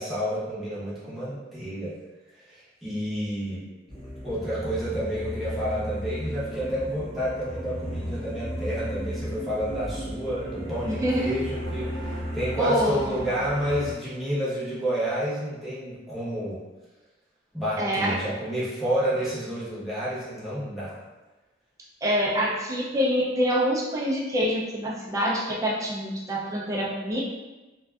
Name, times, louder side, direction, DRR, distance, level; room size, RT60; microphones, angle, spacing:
voice 1, 0.0-2.0 2.5-3.6 4.2-16.6 17.5-21.0, equal, ahead, -11 dB, 0.8 m, -30 dB
sound 1, 3.9-13.9, equal, 35° left, 0.7 m, -35 dB
voice 2, 10.8-11.4 12.6-13.2 17.8-18.2 22.0-27.2, equal, 15° right, -4 dB, 0.4 m, -26 dB
2.5 x 2.2 x 2.3 m, 1.1 s
head